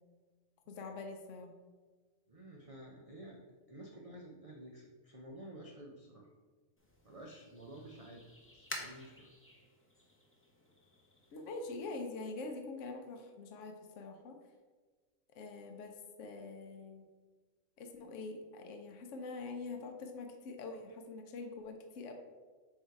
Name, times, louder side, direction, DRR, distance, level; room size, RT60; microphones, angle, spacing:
voice 1, 0.7-1.5 11.3-14.4 15.3-17.1 17.8-22.1, left 3 dB, 65° left, 4 dB, 1.0 m, -45 dB
voice 2, 2.3-3.4 3.7-6.3 7.0-9.3, right 1 dB, 40° right, -1 dB, 0.5 m, -51 dB
sound 1, 6.8-12.0, left 1 dB, 10° left, 0.6 m, -51 dB
7.8 x 2.8 x 4.7 m, 1.4 s
omnidirectional pair, 1.4 m